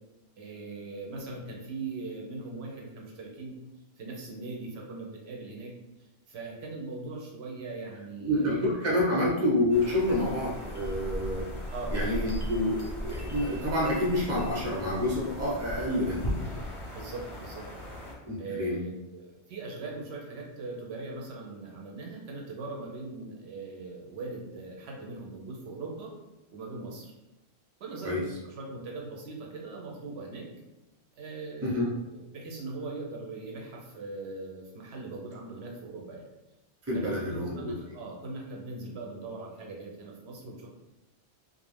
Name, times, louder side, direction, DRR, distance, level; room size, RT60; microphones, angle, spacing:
voice 1, 0.4-3.5 4.0-5.7 6.3-8.8 9.1-9.3 11.7-12.0 16.9-17.7 18.4-26.1 26.5-27.1 27.8-30.5 31.1-36.2 36.9-40.7, right 3 dB, 75° right, -2 dB, 0.8 m, -40 dB
voice 2, 8.2-11.5 11.9-16.5 18.2-18.8 28.0-28.2 31.6-31.9 36.9-37.7, left 1 dB, 20° right, -5 dB, 0.6 m, -28 dB
sound 1, 9.7-18.1, equal, 35° left, 0.6 m, -37 dB
2.4 x 2.0 x 3.2 m, 0.98 s
omnidirectional pair, 1.1 m